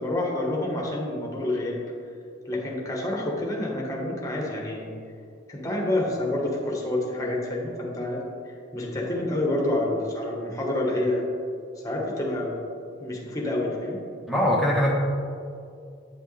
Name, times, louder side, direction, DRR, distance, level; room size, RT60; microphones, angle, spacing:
voice 1, 0.0-1.8 2.5-4.9 5.5-8.2 8.7-11.2 11.8-12.6 13.0-14.0, left 1 dB, 15° left, -2 dB, 1.2 m, -28 dB
voice 2, 14.3-14.9, equal, ahead, -3 dB, 1.1 m, -21 dB
8.6 x 6.3 x 3.3 m, 2.4 s
head